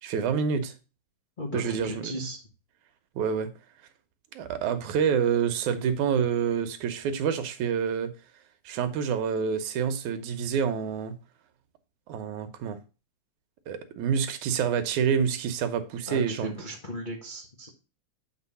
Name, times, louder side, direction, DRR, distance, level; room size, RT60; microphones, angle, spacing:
voice 1, 0.0-0.7 1.5-2.3 3.2-3.5 4.4-8.1 8.7-11.1 12.1-12.8 13.7-16.5, right 7 dB, 80° right, 2.3 m, -27 dB
voice 2, 1.4-2.4 16.1-17.7, equal, 55° left, 0.5 m, -37 dB
8.0 x 4.5 x 5.5 m
omnidirectional pair, 3.4 m